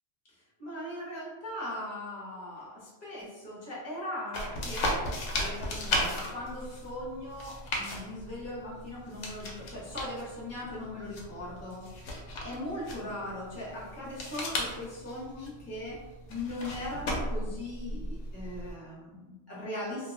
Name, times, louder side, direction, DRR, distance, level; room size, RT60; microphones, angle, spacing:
voice 1, 0.6-5.0 5.3-11.9 12.4-16.0 16.3-20.1, left 1 dB, 15° left, -6 dB, 0.7 m, -39 dB
sound 1, 4.3-18.7, left 1 dB, 85° left, 1.0 m, -36 dB
2.3 x 2.2 x 3.3 m, 1.2 s
omnidirectional pair, 1.3 m